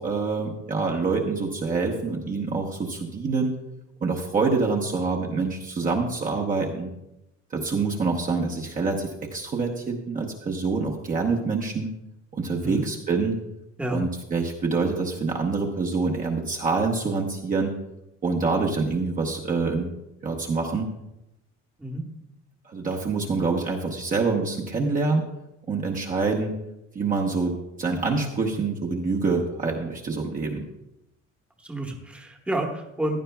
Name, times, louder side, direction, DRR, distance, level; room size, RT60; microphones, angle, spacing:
voice 1, 0.0-3.5 4.0-6.9 7.5-11.9 12.3-13.4 13.9-17.7 18.2-19.9 20.2-20.9 22.6-25.2 25.7-26.5 26.9-30.6, right 4 dB, 25° right, -1 dB, 0.9 m, -26 dB
voice 2, 31.6-33.2, right 1 dB, 5° right, 1 dB, 1.1 m, -29 dB
15.5 x 11.0 x 2.3 m, 0.90 s
cardioid pair, 165°, 31 cm